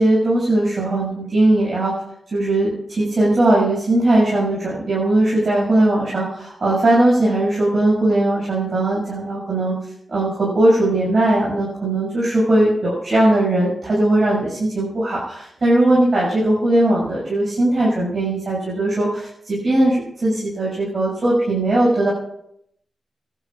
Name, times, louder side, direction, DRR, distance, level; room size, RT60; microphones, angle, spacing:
voice 1, 0.0-1.9 2.3-9.7 10.1-22.1, right 1 dB, 55° right, -6 dB, 6.8 m, -19 dB
28.5 x 12.0 x 2.5 m, 0.74 s
wide cardioid pair, 90°, 0 cm